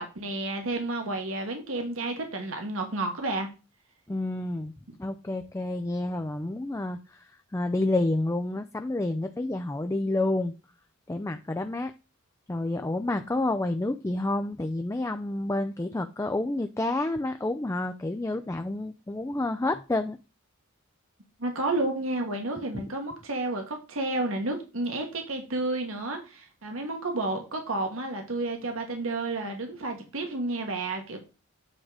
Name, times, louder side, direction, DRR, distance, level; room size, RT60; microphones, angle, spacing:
voice 1, 0.0-3.5 21.4-31.2, right 2 dB, 70° right, 1.5 m, -31 dB
voice 2, 4.1-4.7 5.0-7.2 7.5-10.5 11.1-11.9 12.5-20.2 22.7-22.8, left 2 dB, 15° left, 0.4 m, -29 dB
8.7 x 3.7 x 4.8 m
head